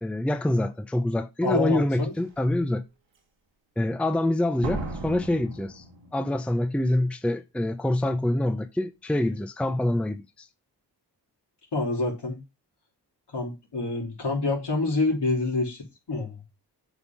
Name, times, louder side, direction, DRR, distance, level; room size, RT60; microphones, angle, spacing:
voice 1, 0.0-2.8 3.8-5.8 6.1-10.5, left 1 dB, 5° left, 0.6 m, -26 dB
voice 2, 1.4-2.1 11.7-12.4 13.3-16.4, left 3 dB, 65° left, 3.3 m, -27 dB
Slam, 1.5-1.6 2.2-2.6 4.6-6.5 6.8-6.9, right 3 dB, 90° right, 2.0 m, -36 dB
8.1 x 3.6 x 6.0 m
cardioid pair, 55°, 43 cm